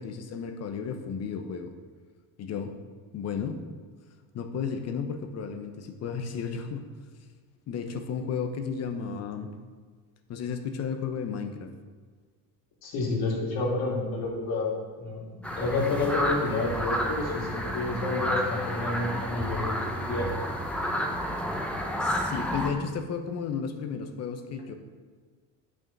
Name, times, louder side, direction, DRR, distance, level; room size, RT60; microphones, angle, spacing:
voice 1, 0.0-1.7 2.4-2.7 3.1-3.6 4.3-6.9 7.7-9.5 10.3-11.7 22.0-24.7, left 6 dB, 40° left, 7 dB, 0.9 m, -33 dB
voice 2, 12.8-14.7 15.0-20.5, left 3 dB, 60° left, -3 dB, 3.0 m, -30 dB
sound 1, 15.4-22.7, equal, 5° left, 0.8 m, -30 dB
9.4 x 6.3 x 5.4 m, 1.5 s
cardioid pair, 140°, 40 cm